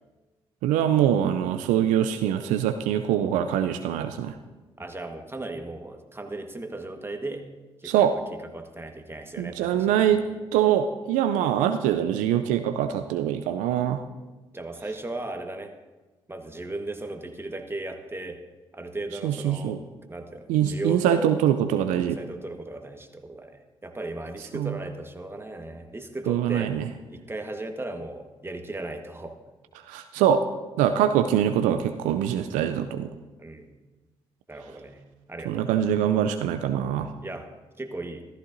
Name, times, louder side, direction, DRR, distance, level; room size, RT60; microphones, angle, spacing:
voice 1, 0.6-4.4 7.8-8.2 9.4-10.2 10.5-14.0 19.2-19.8 20.5-22.2 24.5-24.8 26.3-26.8 29.9-30.4 30.8-33.1 35.5-37.1, right 10 dB, 75° right, 8 dB, 0.4 m, -23 dB
voice 2, 4.8-7.5 7.8-8.2 8.5-10.5 14.5-15.8 16.3-18.4 18.7-19.8 20.1-21.3 22.0-26.8 27.1-29.4 33.4-33.7 34.5-35.0 35.3-35.7 37.2-38.3, right 2 dB, 20° right, 6 dB, 1.4 m, -36 dB
14.5 x 13.5 x 2.6 m, 1.2 s
hypercardioid pair, 40°, 13 cm